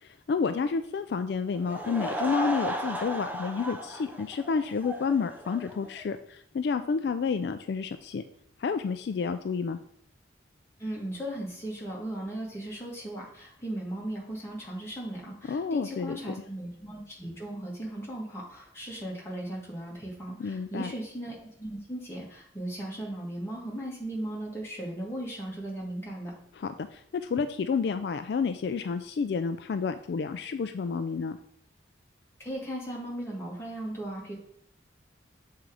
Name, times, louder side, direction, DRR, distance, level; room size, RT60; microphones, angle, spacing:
voice 1, 0.3-8.2 8.6-9.8 15.5-16.3 20.4-20.9 26.6-31.4, left 5 dB, 60° left, 9 dB, 0.3 m, -30 dB
Laughter / Crowd, 1.5-6.1, equal, 10° right, 0.5 m, -35 dB
voice 2, 10.8-26.3 32.4-34.4, right 1 dB, 15° left, -5 dB, 1.8 m, -37 dB
7.1 x 3.8 x 4.8 m, 0.70 s
head